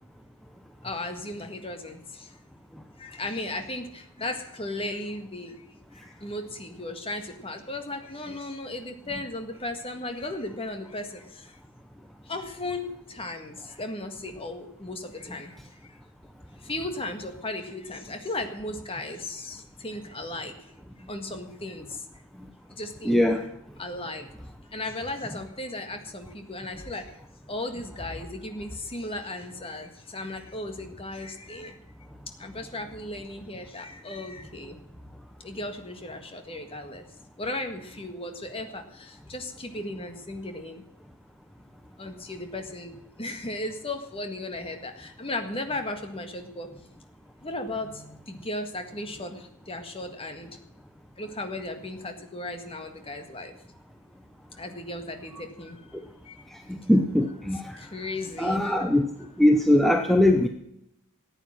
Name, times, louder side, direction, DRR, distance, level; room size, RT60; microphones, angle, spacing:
voice 1, 0.8-2.3 3.0-5.6 5.9-11.5 12.3-15.6 16.6-20.5 21.1-22.0 22.8-23.2 23.8-24.3 24.7-27.1 27.5-31.8 32.4-34.8 35.4-37.0 37.4-40.8 42.0-46.7 47.4-50.6 51.2-53.5 54.6-55.8 56.2-56.4 57.5-58.8, left 2 dB, 25° left, 6 dB, 1.7 m, -36 dB
voice 2, 23.0-23.4 56.7-57.7 58.4-59.1 59.4-60.5, left 1 dB, ahead, 5 dB, 0.7 m, -21 dB
14.0 x 9.1 x 7.5 m, 0.80 s
head